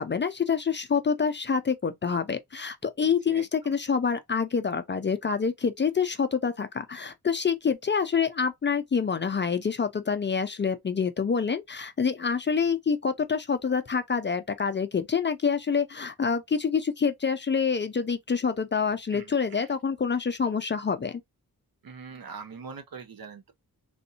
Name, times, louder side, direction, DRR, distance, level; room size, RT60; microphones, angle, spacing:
voice 1, 0.0-21.2, left 6 dB, 30° left, 0.4 m, -27 dB
voice 2, 3.0-3.7 19.1-19.7 21.8-23.5, right 5 dB, 70° right, 0.8 m, -43 dB
3.4 x 2.6 x 2.7 m
wide cardioid pair, 100°, 37 cm